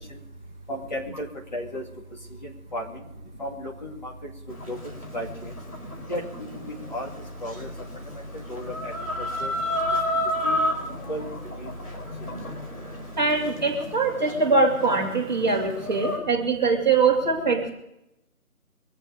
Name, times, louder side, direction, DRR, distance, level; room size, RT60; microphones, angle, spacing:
voice 1, 0.7-1.0 1.5-1.8 2.7-2.8 3.4-4.1 4.7-4.8 5.1-5.3 6.1-6.2 6.9-7.1 7.4-7.7 8.5-8.7 9.4-9.5 10.4-10.6 11.1-11.3 11.6-11.7, left 1 dB, 30° left, -2 dB, 2.5 m, -32 dB
Chicken rooster, 4.5-16.2, left 1 dB, 75° left, 4.7 m, -32 dB
voice 2, 13.2-17.7, right 4 dB, 30° right, -2 dB, 2.6 m, -22 dB
24.0 x 8.1 x 5.0 m, 0.85 s
figure-of-eight pair, 175°, 45 cm